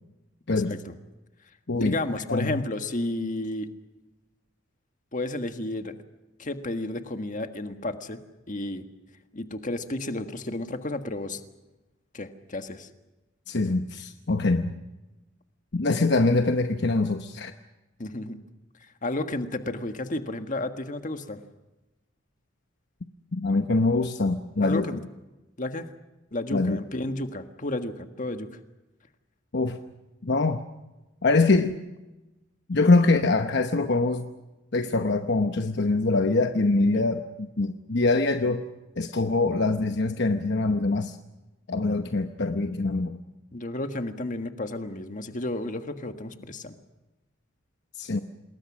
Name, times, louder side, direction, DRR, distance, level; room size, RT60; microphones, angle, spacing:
voice 1, 0.5-0.9 1.7-3.7 5.1-5.9 6.4-8.9 9.3-11.4 12.1-12.9 18.0-18.4 18.8-21.4 24.6-25.0 25.6-25.9 26.3-28.6 36.9-37.0 43.5-46.7, left 2 dB, 40° left, 8 dB, 1.6 m, -32 dB
voice 2, 2.3-2.6 13.5-14.8 15.7-17.5 23.3-24.9 26.5-26.8 29.5-29.8 30.2-30.6 31.2-31.8 32.7-34.3 34.7-38.6 39.0-41.2 41.7-43.2 48.0-48.2, left 3 dB, 60° left, 7 dB, 1.0 m, -24 dB
27.5 x 21.0 x 6.2 m, 1.0 s
head